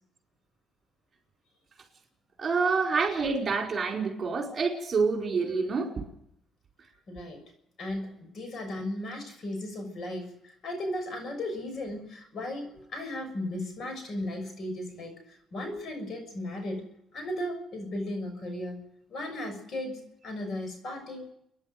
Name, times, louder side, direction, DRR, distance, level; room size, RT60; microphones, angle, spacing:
voice 1, 2.4-5.9, right 4 dB, 40° right, 2 dB, 4.7 m, -27 dB
voice 2, 7.1-7.4 7.8-16.8 17.1-18.8 19.1-21.3, left 1 dB, 50° left, 6 dB, 6.4 m, -36 dB
28.0 x 10.5 x 9.4 m, 0.76 s
cardioid pair, 115°, 0 cm